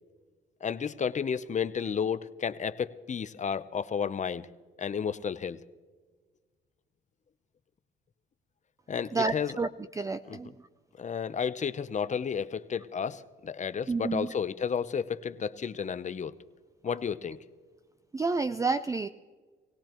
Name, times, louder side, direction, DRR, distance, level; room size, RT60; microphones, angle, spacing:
voice 1, 0.6-4.5 4.8-5.6 8.9-9.5 10.3-10.4 11.0-16.3 16.8-17.4, left 7 dB, 35° left, 13 dB, 0.7 m, -32 dB
voice 2, 9.1-10.5 13.9-14.3 16.9-17.0 18.1-19.1, right 4 dB, 15° right, 11 dB, 0.4 m, -30 dB
20.5 x 17.5 x 3.0 m, 1.4 s
cardioid pair, 90°, 20 cm